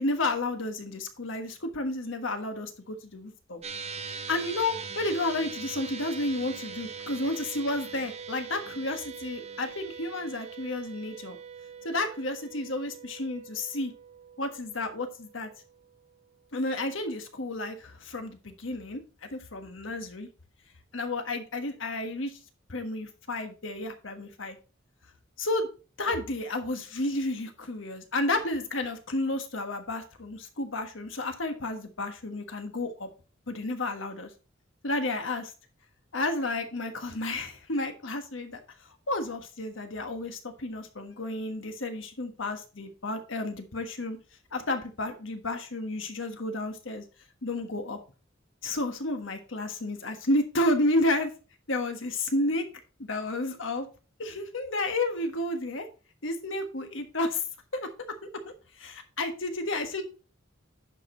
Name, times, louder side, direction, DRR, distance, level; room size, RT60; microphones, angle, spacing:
voice 1, 0.0-3.6 4.3-11.4 11.8-13.9 14.4-15.5 16.5-19.0 19.3-20.3 20.9-22.4 22.7-24.6 25.4-25.7 26.0-33.1 33.5-34.3 34.8-35.5 36.1-38.6 39.1-44.2 44.5-47.0 47.4-48.0 48.6-51.3 51.7-52.6 53.0-53.9 54.2-55.8 56.2-57.4 57.7-57.9 58.4-60.0, left 2 dB, 75° left, 6 dB, 1.4 m, -31 dB
sound 1, 3.6-16.2, right 6 dB, 35° right, 1.0 m, -42 dB
10.5 x 5.0 x 3.9 m, 0.34 s
head